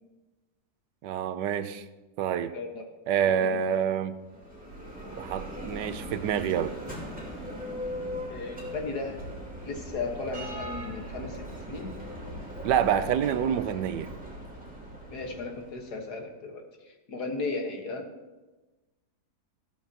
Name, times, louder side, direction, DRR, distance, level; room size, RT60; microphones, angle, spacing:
voice 1, 1.0-1.8 2.2-2.5 3.1-4.1 5.2-6.7 12.6-14.1, right 9 dB, 85° right, 12 dB, 1.3 m, -27 dB
voice 2, 2.5-2.9 3.2-3.9 8.3-9.2 9.6-11.9 15.1-18.1, left 3 dB, 70° left, 2 dB, 2.0 m, -36 dB
Bell, 4.2-16.0, equal, 5° right, 2.6 m, -39 dB
14.0 x 13.0 x 2.9 m, 1.2 s
omnidirectional pair, 1.8 m